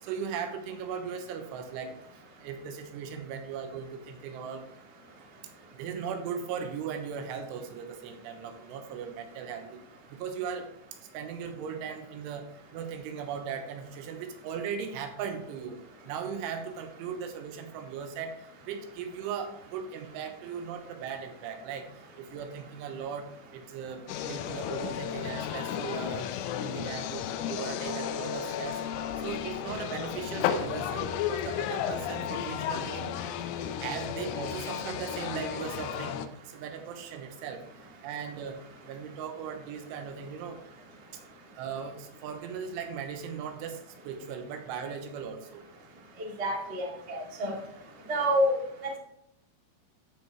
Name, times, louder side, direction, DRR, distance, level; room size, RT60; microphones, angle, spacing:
voice 1, 0.0-2.0 2.4-4.7 5.7-9.8 10.1-10.7 11.1-15.8 16.1-21.9 22.2-26.3 26.6-28.8 29.2-33.4 33.8-37.6 38.0-38.6 38.9-40.6 41.1-41.2 41.6-45.7, right 7 dB, 90° right, 6 dB, 3.5 m, -38 dB
sound 1, 24.1-36.3, left 9 dB, 90° left, 3.2 m, -33 dB
voice 2, 46.2-47.6 48.1-48.5 48.8-49.0, equal, 55° right, -2 dB, 0.7 m, -28 dB
14.5 x 5.4 x 3.5 m, 0.78 s
omnidirectional pair, 5.5 m